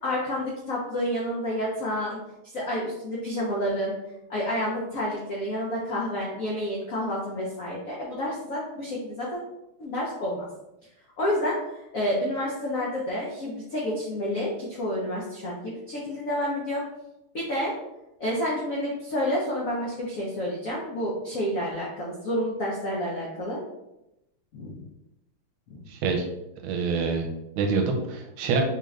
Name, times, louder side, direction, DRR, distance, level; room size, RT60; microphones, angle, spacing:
voice 1, 0.0-2.2 2.5-3.9 4.3-9.4 9.8-10.4 11.2-16.8 17.3-17.7 18.2-23.6 24.5-24.8 25.7-25.8, left 1 dB, 80° left, -4 dB, 0.7 m, -29 dB
voice 2, 25.9-26.3 26.6-27.3 27.6-28.6, right 4 dB, 80° right, 3 dB, 1.5 m, -26 dB
3.9 x 2.4 x 3.2 m, 0.90 s
omnidirectional pair, 2.4 m